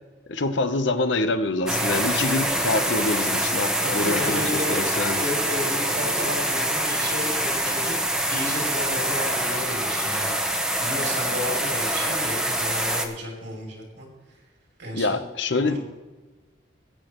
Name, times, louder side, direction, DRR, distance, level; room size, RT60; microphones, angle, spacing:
voice 1, 0.3-5.2 14.9-15.8, left 3 dB, 70° left, 10 dB, 0.9 m, -26 dB
sound 1, 1.7-13.1, right 1 dB, 5° right, 1.1 m, -25 dB
voice 2, 3.8-4.8 5.2-7.9 8.3-10.3 10.8-14.1 14.8-15.2 15.6-15.8, equal, 75° right, -1 dB, 2.8 m, -32 dB
18.0 x 8.7 x 3.1 m, 1.2 s
head